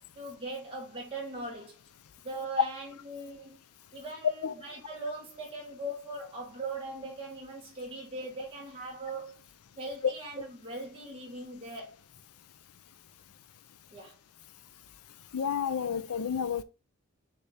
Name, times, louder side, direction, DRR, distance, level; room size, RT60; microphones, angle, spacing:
voice 1, 0.0-1.8 2.2-3.6 3.9-9.4 9.8-12.0 13.9-14.1, right 2 dB, 25° right, 2.6 m, -40 dB
voice 2, 15.3-16.6, left 7 dB, 90° left, 0.5 m, -31 dB
6.8 x 3.4 x 4.2 m
head